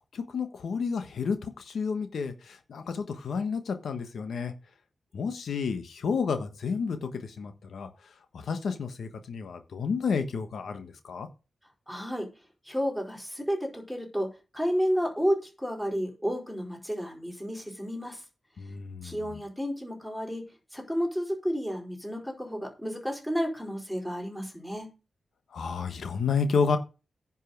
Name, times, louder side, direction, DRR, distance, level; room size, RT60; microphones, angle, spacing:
voice 1, 0.1-4.5 5.1-7.9 8.3-11.3 18.6-19.4 25.5-26.8, left 5 dB, 75° left, 1.3 m, -31 dB
voice 2, 11.9-12.3 12.7-18.2 19.0-20.4 20.7-24.9, equal, 5° left, 4.5 m, -31 dB
10.5 x 5.5 x 6.6 m
wide cardioid pair, 130°, 0 cm